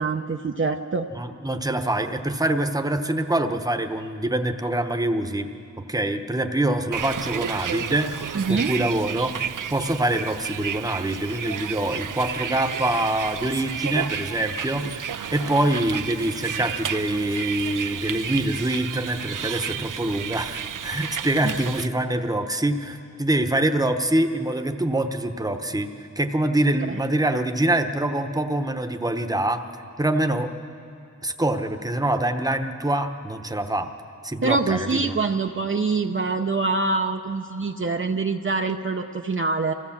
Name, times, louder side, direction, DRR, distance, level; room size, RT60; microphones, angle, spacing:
voice 1, 0.0-1.1 8.3-8.7 21.4-21.6 26.9-27.0 34.4-39.7, right 3 dB, 40° right, 4 dB, 0.6 m, -25 dB
voice 2, 1.1-5.5 5.9-9.3 9.7-15.1 15.3-25.9 26.2-29.6 30.0-30.5 31.2-33.9 34.2-35.0, right 1 dB, 10° right, 6 dB, 0.9 m, -25 dB
Bus, 6.9-21.9, right 8 dB, 80° right, 0.6 m, -32 dB
25.0 x 15.5 x 7.3 m, 2.6 s
wide cardioid pair, 90°, 31 cm